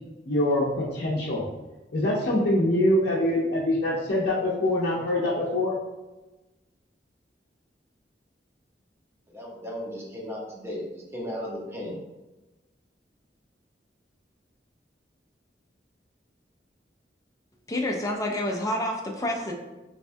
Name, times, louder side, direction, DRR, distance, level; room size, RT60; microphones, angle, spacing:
voice 1, 0.3-1.4 1.9-5.8, left 1 dB, 60° left, -7 dB, 0.6 m, -24 dB
voice 2, 9.3-12.0, equal, 15° right, -3 dB, 0.7 m, -35 dB
voice 3, 17.7-19.5, left 1 dB, 20° left, 1 dB, 0.4 m, -28 dB
4.1 x 2.2 x 2.6 m, 1.1 s
head